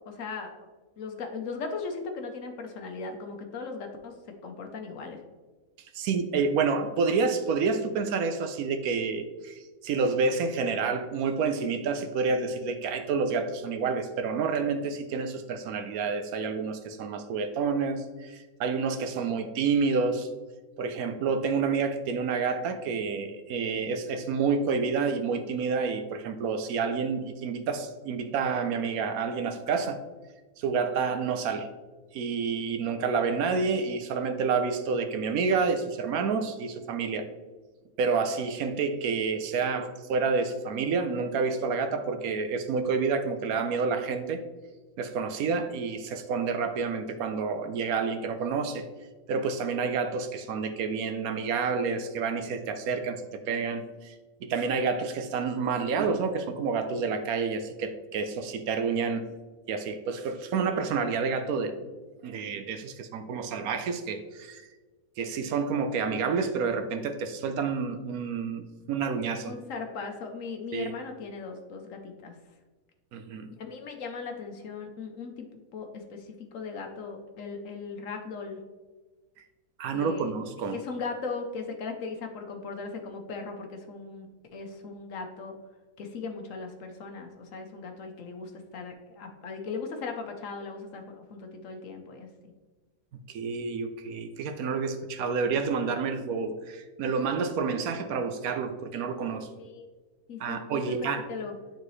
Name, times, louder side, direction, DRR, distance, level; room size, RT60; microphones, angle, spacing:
voice 1, 0.1-0.7 1.0-4.1 4.4-5.2 69.4-72.3 73.5-75.5 75.7-76.3 76.5-78.6 79.9-80.3 80.7-85.6 86.0-92.3 99.6-99.9 100.3-101.0 101.3-101.5, left 4 dB, 65° left, 4 dB, 1.1 m, -38 dB
voice 2, 5.9-20.3 20.8-30.0 30.6-31.7 32.1-37.3 38.0-44.4 45.0-48.9 49.3-54.2 54.4-59.3 59.7-61.9 62.2-64.7 65.2-69.5 70.7-70.9 73.1-73.5 79.8-80.8 93.3-99.5 100.4-101.2, right 5 dB, 75° right, 8 dB, 1.1 m, -29 dB
9.5 x 3.9 x 3.1 m, 1.3 s
omnidirectional pair, 1.6 m